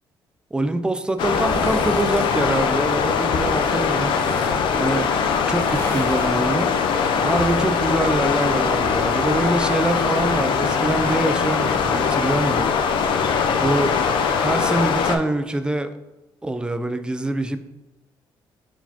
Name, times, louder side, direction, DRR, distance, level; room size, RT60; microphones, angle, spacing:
voice 1, 0.5-5.2 5.5-12.7 13.1-14.0 14.4-16.0 16.4-17.6, right 2 dB, 10° right, 0.3 m, -25 dB
sound 1, 1.2-15.2, left 6 dB, 75° left, 0.4 m, -21 dB
sound 2, 1.2-2.4 3.5-4.6 5.4-8.8 9.1-12.5 12.9-13.0, equal, 25° left, 1.2 m, -37 dB
4.5 x 4.1 x 2.8 m
cardioid pair, 100°, 9 cm